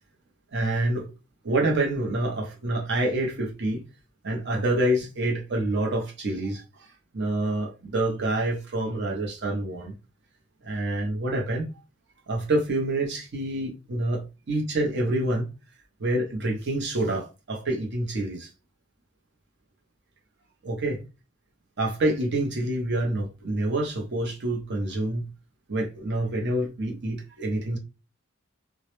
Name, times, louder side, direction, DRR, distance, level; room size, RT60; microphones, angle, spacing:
voice 1, 0.5-1.1 1.4-3.8 4.2-6.9 7.1-9.9 10.6-11.7 12.3-15.5 16.0-18.5 20.6-21.0 21.8-25.3 25.7-27.8, right 1 dB, 55° right, 0.7 m, -27 dB
2.2 x 2.0 x 2.9 m
head